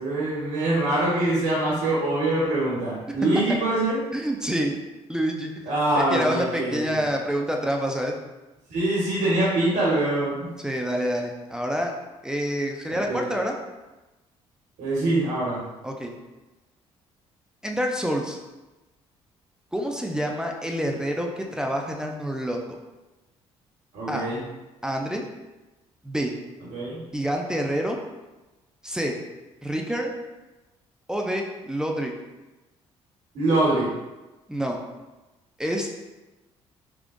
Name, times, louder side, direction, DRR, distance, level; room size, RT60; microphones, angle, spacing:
voice 1, 0.0-4.0 5.7-6.8 8.7-10.5 12.9-13.3 14.8-15.6 23.9-24.4 26.7-27.0 33.3-33.9, right 2 dB, 75° right, -6 dB, 1.3 m, -24 dB
voice 2, 4.1-4.7 5.1-5.5 6.0-8.1 10.6-11.9 12.2-13.5 15.8-16.1 17.6-18.4 19.7-22.8 24.1-24.2 24.8-25.2 26.0-26.3 27.1-28.0 28.8-29.2 29.6-30.1 31.1-32.1 34.5-34.8 35.6-35.9, equal, 5° right, 1 dB, 0.4 m, -27 dB
3.6 x 2.5 x 2.5 m, 1.1 s
supercardioid pair, 75°, 12 cm